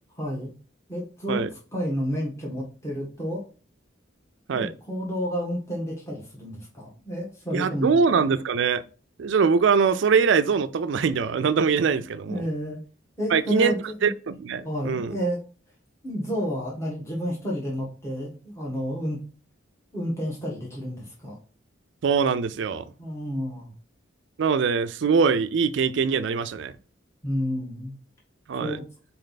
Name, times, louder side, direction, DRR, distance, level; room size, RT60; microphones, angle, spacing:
voice 1, 0.2-0.5 0.9-1.4 1.7-3.4 4.5-7.9 12.3-12.8 13.2-14.1 14.6-15.4 16.0-19.2 19.9-21.3 23.0-23.7 27.2-27.9 28.6-28.8, equal, 15° left, 1.3 m, -30 dB
voice 2, 7.5-8.8 9.2-12.5 13.3-13.8 14.0-15.2 22.0-22.8 24.4-26.7 28.5-28.8, right 5 dB, 70° right, 0.4 m, -23 dB
4.0 x 3.3 x 4.0 m
head